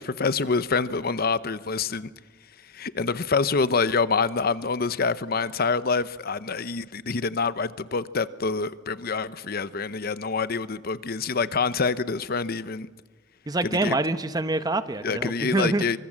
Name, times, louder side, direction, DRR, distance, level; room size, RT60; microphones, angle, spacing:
voice 1, 0.0-2.1 2.7-12.9 13.6-14.0 15.0-16.0, left 4 dB, 55° left, 0.8 m, -26 dB
voice 2, 13.5-15.8, right 2 dB, 20° right, 1.0 m, -26 dB
26.5 x 25.0 x 7.4 m
head